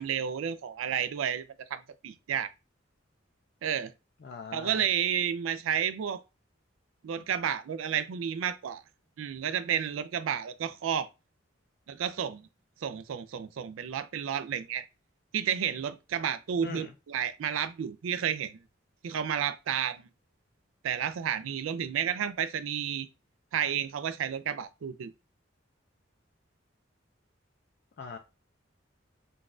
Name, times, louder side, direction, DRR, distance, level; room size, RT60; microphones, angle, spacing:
voice 1, 0.0-1.5 1.7-2.5 3.6-3.9 4.5-6.2 7.0-8.8 9.2-11.1 11.9-12.4 12.8-14.8 15.3-18.6 19.0-20.0 20.8-23.1 23.5-25.1, right 8 dB, 85° right, 0.4 m, -31 dB
voice 2, 4.2-4.8 16.6-16.9 28.0-28.2, left 4 dB, 55° left, 0.4 m, -41 dB
3.9 x 2.3 x 2.4 m
head